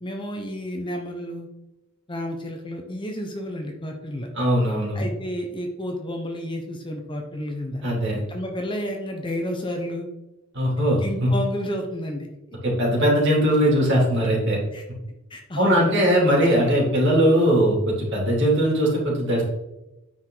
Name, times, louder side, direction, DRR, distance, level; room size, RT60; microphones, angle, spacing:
voice 1, 0.0-1.5 2.1-4.3 4.9-7.8 8.3-10.1 11.0-12.3 14.7-14.8 15.3-15.9, equal, 25° left, 3 dB, 0.9 m, -31 dB
voice 2, 4.4-5.1 7.8-8.2 10.5-11.3 12.6-14.6 15.6-19.4, equal, 55° right, -4 dB, 3.0 m, -20 dB
9.5 x 4.8 x 3.9 m, 0.96 s
head